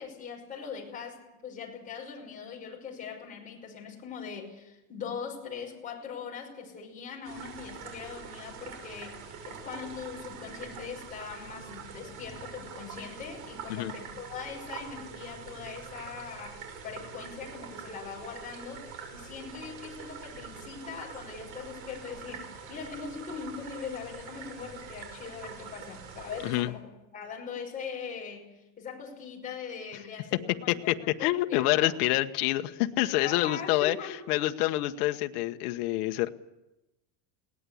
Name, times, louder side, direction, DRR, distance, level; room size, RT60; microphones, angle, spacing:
voice 1, 0.0-26.9 27.1-28.5 28.8-30.9 31.2-31.9 33.2-34.1, left 6 dB, 15° left, -2 dB, 5.9 m, -41 dB
sound 1, 7.2-26.6, right 6 dB, 70° right, 6.2 m, -44 dB
voice 2, 31.2-34.0 34.3-36.3, left 16 dB, 75° left, 7 dB, 1.3 m, -27 dB
21.0 x 18.0 x 8.5 m, 0.99 s
cardioid pair, 175°, 46 cm